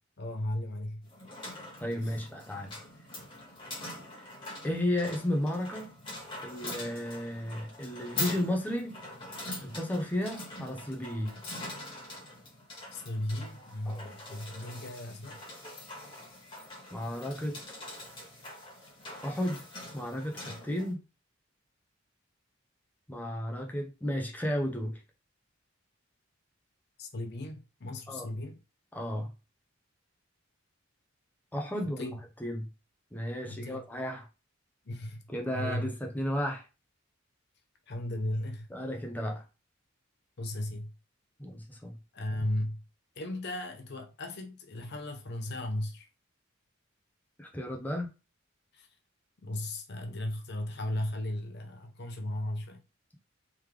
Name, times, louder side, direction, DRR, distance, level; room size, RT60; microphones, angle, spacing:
voice 1, 0.2-1.1 2.0-2.2 12.9-15.4 27.0-28.6 32.0-32.2 33.4-33.8 34.9-35.2 35.5-35.9 37.9-38.7 40.4-40.9 42.1-42.8 43.2-46.1 48.7-48.9 49.4-52.8, left 1 dB, 55° left, 0.7 m, -36 dB
sound 1, 1.0-20.9, left 2 dB, 25° left, 1.6 m, -43 dB
voice 2, 1.8-2.8 4.6-5.9 6.4-9.0 9.6-11.4 13.9-14.1 16.9-17.6 19.2-19.6 19.9-21.0 23.1-25.0 28.1-28.3 28.9-29.3 31.5-32.7 33.1-34.3 35.3-36.6 38.7-39.4 41.4-41.9 47.4-48.1, left 1 dB, 10° left, 0.7 m, -33 dB
3.6 x 3.2 x 3.2 m
head